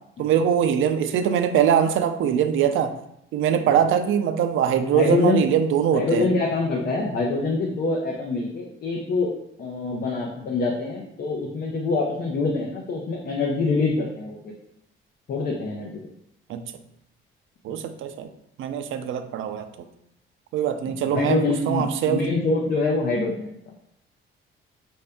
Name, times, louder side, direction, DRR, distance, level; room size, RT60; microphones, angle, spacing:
voice 1, 0.2-2.9 3.3-6.2 16.5-16.6 17.6-18.3 18.6-19.7 20.5-21.4 21.7-22.2, right 8 dB, 70° right, 8 dB, 0.5 m, -22 dB
voice 2, 4.9-5.5 5.9-9.3 9.6-14.4 15.3-16.0 17.7-17.8 21.0-23.5, left 3 dB, 45° left, -1 dB, 0.6 m, -25 dB
5.4 x 2.6 x 3.4 m, 0.77 s
cardioid pair, 155°, 21 cm